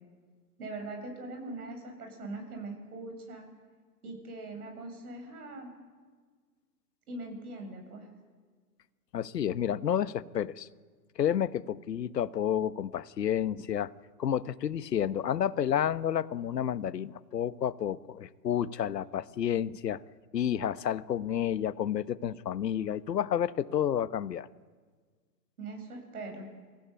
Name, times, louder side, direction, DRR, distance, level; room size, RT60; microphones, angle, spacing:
voice 1, 0.6-3.5 4.0-5.7 7.1-8.1 25.6-26.5, right 2 dB, 65° right, 5 dB, 7.5 m, -41 dB
voice 2, 9.1-10.7 11.2-13.9 14.2-20.0 20.3-24.5, left 9 dB, 80° left, 15 dB, 1.1 m, -30 dB
25.5 x 16.0 x 8.6 m, 1.5 s
hypercardioid pair, 135°, 48 cm